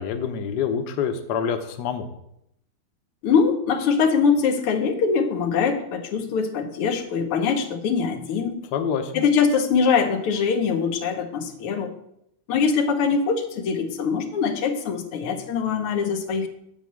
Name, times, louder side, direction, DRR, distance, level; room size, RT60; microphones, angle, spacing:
voice 1, 0.0-2.1 8.7-9.2, left 7 dB, 60° left, 6 dB, 1.2 m, -26 dB
voice 2, 3.2-8.6 9.1-11.9 12.5-16.5, left 5 dB, 90° left, 6 dB, 1.9 m, -23 dB
9.4 x 4.1 x 7.4 m, 0.77 s
omnidirectional pair, 2.4 m